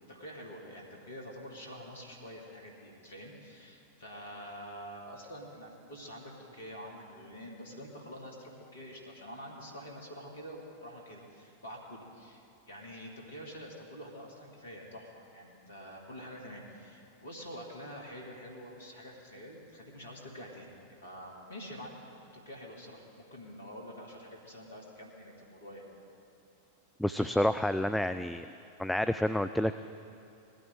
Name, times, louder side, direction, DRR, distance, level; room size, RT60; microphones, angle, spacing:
voice 1, 0.1-20.7 21.0-25.9, equal, 70° left, 0 dB, 2.2 m, -47 dB
voice 2, 27.0-28.5 28.8-29.7, left 1 dB, 5° left, 10 dB, 0.3 m, -29 dB
20.0 x 14.0 x 3.7 m, 2.6 s
figure-of-eight pair, 90°, 0 cm